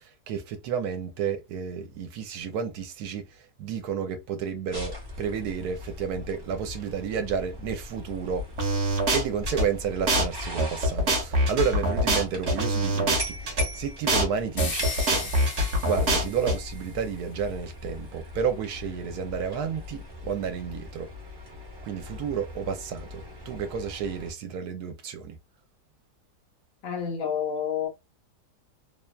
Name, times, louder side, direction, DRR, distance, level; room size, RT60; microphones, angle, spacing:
voice 1, 0.3-3.2 3.6-8.4 9.1-15.3 15.8-21.1 21.8-25.4, right 7 dB, 75° right, 1.1 m, -31 dB
sound 1, 4.7-24.3, left 2 dB, 20° right, 0.7 m, -40 dB
sound 2, 8.6-9.7 10.1-10.3 10.6-13.7 14.1-14.3 14.6-16.6, equal, 55° right, 0.9 m, -24 dB
sound 3, 14.6-17.0, left 3 dB, 45° left, 0.9 m, -37 dB
voice 2, 26.8-27.9, left 7 dB, 65° left, 1.0 m, -29 dB
2.9 x 2.1 x 2.3 m
omnidirectional pair, 1.7 m